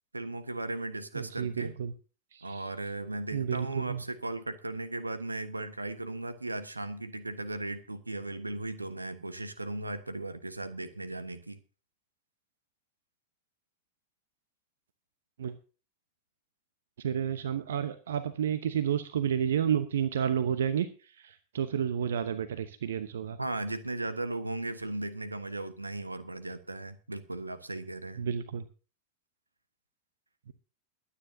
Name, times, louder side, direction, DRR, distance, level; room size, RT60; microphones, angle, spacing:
voice 1, 0.1-1.8 2.4-11.6 23.4-28.2, right 2 dB, 80° right, 1.3 m, -37 dB
voice 2, 1.1-1.9 2.3-2.7 3.3-4.0 15.4-15.5 17.0-23.4 28.2-28.6 30.5-30.6, right 8 dB, 60° right, 0.9 m, -31 dB
22.0 x 9.9 x 2.8 m
figure-of-eight pair, 90°, 0 cm